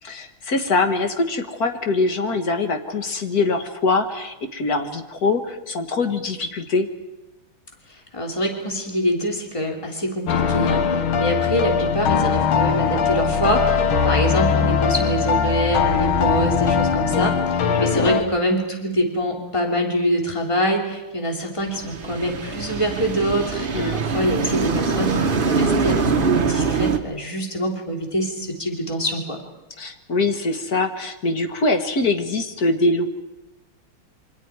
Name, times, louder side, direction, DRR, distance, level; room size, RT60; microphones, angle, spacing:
voice 1, 0.0-6.9 17.7-18.2 23.7-24.0 29.8-33.1, left 3 dB, 50° left, 7 dB, 1.7 m, -23 dB
voice 2, 8.1-29.4, equal, 15° left, 1 dB, 2.9 m, -25 dB
sound 1, 10.3-18.2, left 6 dB, 75° left, 2.0 m, -20 dB
sound 2, 21.7-27.0, right 4 dB, 35° right, 0.9 m, -23 dB
28.0 x 24.0 x 4.8 m, 1.0 s
omnidirectional pair, 2.3 m